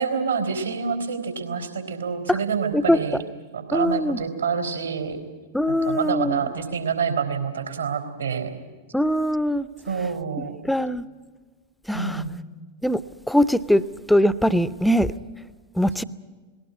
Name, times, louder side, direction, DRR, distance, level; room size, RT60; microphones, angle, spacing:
voice 1, 0.0-3.2 3.5-5.2 5.7-8.5 9.9-10.6 11.9-12.3, right 6 dB, 75° right, 6 dB, 3.6 m, -27 dB
voice 2, 2.7-3.2 3.7-4.2 5.5-6.4 8.9-9.7 10.6-11.0 11.9-12.2 12.8-13.0 13.3-13.8 14.1-15.1 15.8-16.0, equal, ahead, 17 dB, 0.6 m, -21 dB
19.5 x 18.5 x 9.8 m, 1.4 s
figure-of-eight pair, 90°, 0 cm